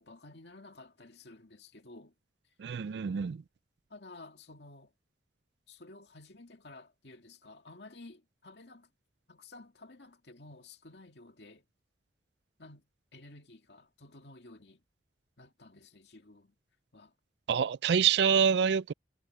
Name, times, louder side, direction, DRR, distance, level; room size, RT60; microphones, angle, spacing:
voice 1, 0.0-2.1 3.9-4.9 5.7-8.9 9.3-11.6 12.6-12.9 13.1-14.8 15.4-16.5 16.9-17.1, left 2 dB, 70° left, 2.1 m, -53 dB
voice 2, 2.6-3.4 17.5-18.9, right 7 dB, 70° right, 0.4 m, -26 dB
head